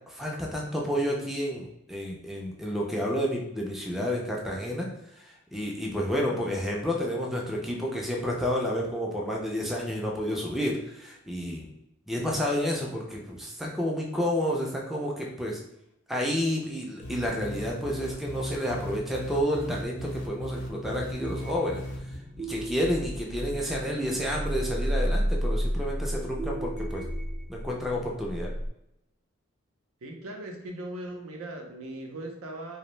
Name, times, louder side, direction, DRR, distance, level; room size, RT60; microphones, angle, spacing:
voice 1, 0.1-11.7 12.1-15.6 16.1-21.8 22.4-27.0 27.5-28.5, equal, ahead, -2 dB, 0.3 m, -30 dB
sound 1, 17.0-22.2, equal, 55° left, 0.5 m, -38 dB
sound 2, 20.9-28.7, equal, 35° right, 0.8 m, -32 dB
voice 2, 30.0-32.8, right 1 dB, 80° right, 2 dB, 0.5 m, -39 dB
2.5 x 2.0 x 3.1 m, 0.81 s
head